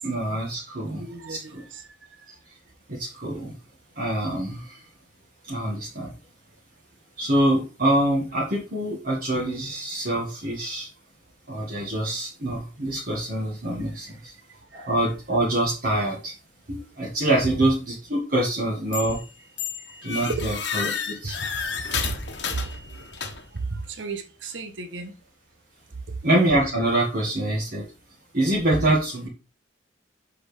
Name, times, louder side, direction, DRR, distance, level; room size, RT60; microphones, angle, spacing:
voice 1, 0.0-1.6 2.9-3.5 3.9-4.8 5.4-6.1 7.2-10.9 11.5-14.3 14.7-16.3 16.7-19.2 20.0-21.4 22.4-22.5 26.2-27.8 28.3-29.3, right 1 dB, 50° right, 1.7 m, -25 dB
voice 2, 1.0-1.9 14.1-14.2 14.7-14.9 20.3-20.4 22.0-22.2 23.7-25.1 28.9-29.0, right 3 dB, 75° right, 1.1 m, -34 dB
sound 1, 18.9-19.3 19.6-23.6, left 6 dB, 65° left, 1.2 m, -31 dB
7.1 x 5.2 x 3.3 m
head